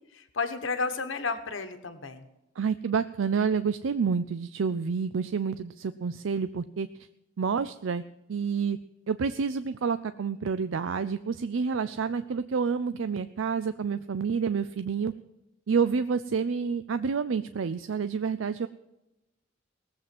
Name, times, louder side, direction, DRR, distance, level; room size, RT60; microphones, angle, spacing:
voice 1, 0.0-2.2, left 4 dB, 85° left, 9 dB, 1.1 m, -32 dB
voice 2, 2.6-6.9 7.4-8.0 8.3-8.8 9.1-15.1 15.7-18.7, right 6 dB, 90° right, 12 dB, 0.4 m, -28 dB
18.5 x 7.7 x 6.0 m, 0.95 s
head